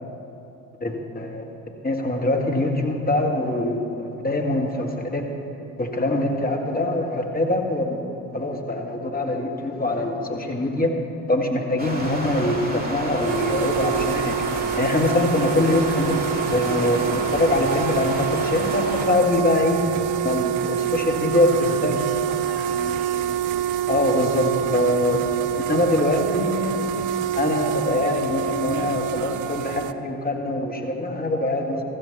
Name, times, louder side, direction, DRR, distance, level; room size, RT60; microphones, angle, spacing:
voice 1, 0.8-1.4 1.8-5.3 5.8-8.0 8.3-10.9 11.3-14.4 14.8-19.8 20.2-22.0 23.9-25.3 25.7-26.7 27.4-31.8, left 1 dB, 20° left, 2 dB, 1.9 m, -23 dB
Stream, 11.8-19.1, right 1 dB, 20° right, 2.4 m, -30 dB
sound 1, 13.1-29.9, right 10 dB, 45° right, 0.5 m, -26 dB
voice 2, 20.9-21.7 21.9-23.3, equal, 90° right, -5 dB, 2.0 m, -40 dB
14.0 x 14.0 x 4.2 m, 2.8 s
figure-of-eight pair, 45°, 46 cm